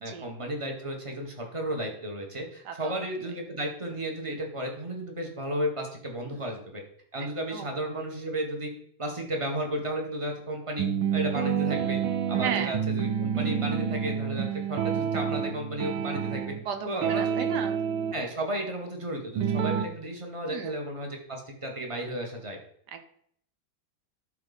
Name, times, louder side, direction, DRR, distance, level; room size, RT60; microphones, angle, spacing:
voice 1, 0.0-6.8 7.1-8.7 9.0-12.0 12.3-16.6 16.8-17.5 18.1-22.6, right 1 dB, 20° right, 2 dB, 1.2 m, -33 dB
voice 2, 7.2-7.7 12.4-12.8 16.6-17.8 20.5-20.8 22.9-23.1, right 7 dB, 60° right, 7 dB, 1.4 m, -35 dB
sound 1, 10.8-16.6 17.0-18.1 19.4-19.9, right 8 dB, 90° right, 1.5 m, -28 dB
12.0 x 4.3 x 4.1 m, 0.67 s
omnidirectional pair, 2.2 m